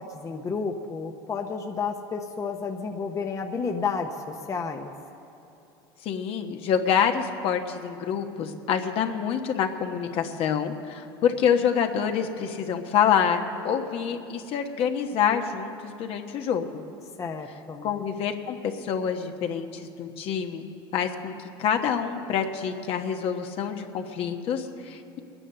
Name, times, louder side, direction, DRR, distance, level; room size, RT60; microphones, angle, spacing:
voice 1, 0.0-4.1 4.5-4.9 17.2-17.9, left 5 dB, 25° left, 4 dB, 0.9 m, -31 dB
voice 2, 6.0-16.8 17.8-21.3 21.6-25.2, left 7 dB, 55° left, 5 dB, 1.2 m, -27 dB
21.5 x 9.9 x 6.8 m, 2.8 s
supercardioid pair, 105°, 12 cm